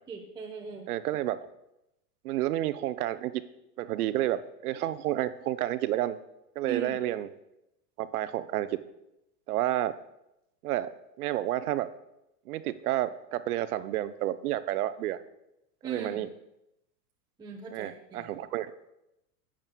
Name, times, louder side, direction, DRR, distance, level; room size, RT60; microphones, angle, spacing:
voice 1, 0.1-0.9 6.6-7.0 15.8-16.2 17.4-18.3, right 6 dB, 10° right, -2 dB, 0.8 m, -39 dB
voice 2, 0.9-1.4 2.2-3.4 3.8-6.2 6.6-7.3 8.0-8.7 9.5-9.9 10.6-10.9 11.2-11.9 12.5-15.2 15.8-16.3 17.7-18.7, right 13 dB, 60° right, 13 dB, 0.6 m, -30 dB
12.5 x 8.7 x 2.2 m, 0.87 s
hypercardioid pair, 110°, 50 cm